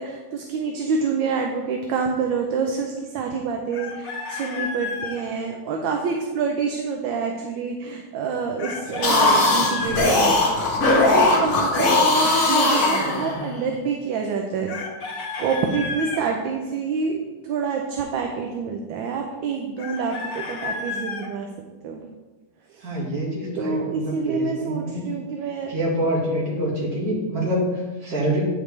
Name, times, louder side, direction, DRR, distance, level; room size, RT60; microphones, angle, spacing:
voice 1, 0.0-10.4 10.9-14.8 15.4-21.5 21.8-22.0 22.7-22.8 23.6-25.7, right 5 dB, 75° right, 2 dB, 1.3 m, -27 dB
Chicken rooster, 3.7-5.2 8.6-10.1 14.7-16.2 19.8-21.3, left 4 dB, 65° left, 1.6 m, -32 dB
sound 1, 8.9-13.6, left 2 dB, 40° left, 1.5 m, -19 dB
voice 2, 22.8-25.1 25.7-28.4, right 1 dB, 50° right, -4 dB, 2.2 m, -26 dB
8.9 x 5.0 x 3.3 m, 1.2 s
omnidirectional pair, 2.2 m